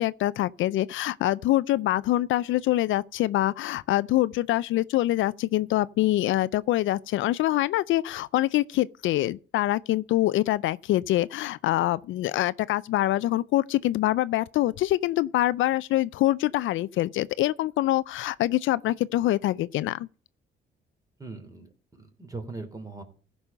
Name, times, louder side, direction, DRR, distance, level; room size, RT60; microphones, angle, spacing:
voice 1, 0.0-20.1, left 15 dB, 75° left, 0.4 m, -25 dB
voice 2, 21.2-23.0, right 3 dB, 15° right, 3.1 m, -40 dB
15.5 x 5.5 x 5.4 m
cardioid pair, 90°, 20 cm